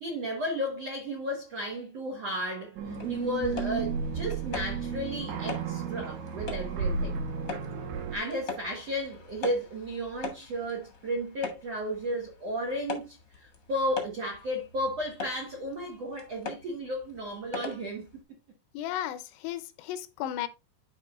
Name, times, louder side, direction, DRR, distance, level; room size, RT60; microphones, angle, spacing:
voice 1, 0.0-7.2 8.1-18.1, equal, 70° right, 1.5 m, -34 dB
sound 1, 2.8-18.2, left 4 dB, 50° left, 1.3 m, -42 dB
sound 2, 2.8-8.2, right 5 dB, 85° right, 3.4 m, -33 dB
voice 2, 18.7-20.5, left 12 dB, 80° left, 2.8 m, -34 dB
12.5 x 4.5 x 2.4 m
omnidirectional pair, 4.9 m